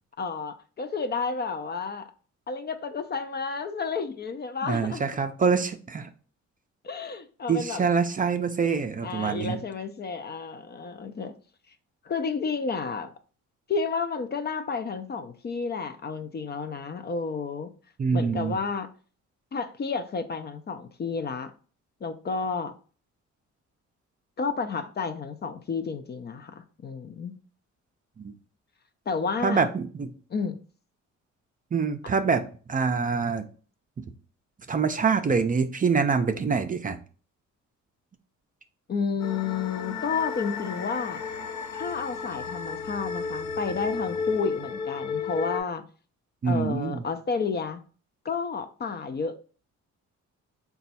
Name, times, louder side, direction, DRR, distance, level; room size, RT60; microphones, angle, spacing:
voice 1, 0.2-2.1 2.5-5.1 6.8-7.9 9.0-11.3 12.0-13.1 13.7-17.7 18.1-18.9 19.5-21.5 22.0-22.7 24.4-27.3 29.1-29.6 30.3-30.6 38.9-41.2 41.7-45.8 46.4-47.8 48.2-49.4, left 5 dB, 35° left, 0.4 m, -31 dB
voice 2, 4.6-6.1 7.5-9.6 18.0-18.6 28.2-28.3 29.4-30.1 31.7-33.4 34.7-37.0 46.4-47.0, right 5 dB, 30° right, 0.4 m, -25 dB
sound 1, 39.2-45.6, left 5 dB, 65° left, 0.7 m, -33 dB
3.9 x 2.3 x 4.1 m
cardioid pair, 90°, 30 cm